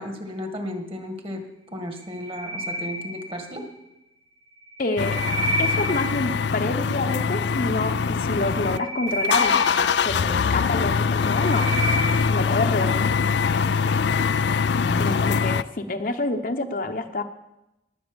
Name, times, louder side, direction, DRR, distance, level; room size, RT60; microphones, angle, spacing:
voice 1, 0.0-3.6 14.8-15.2, left 1 dB, 30° right, 5 dB, 1.7 m, -34 dB
sound 1, 2.0-3.7 4.6-6.4 8.4-10.5 11.0-12.5, equal, 60° right, 1.7 m, -30 dB
voice 2, 4.8-5.2 5.6-11.7 12.3-13.1 15.0-17.2, left 2 dB, 45° left, 5 dB, 1.0 m, -27 dB
sound 2, 5.0-8.8 9.1-15.6, left 5 dB, 65° left, 0.4 m, -23 dB
19.5 x 7.7 x 7.1 m, 0.93 s
head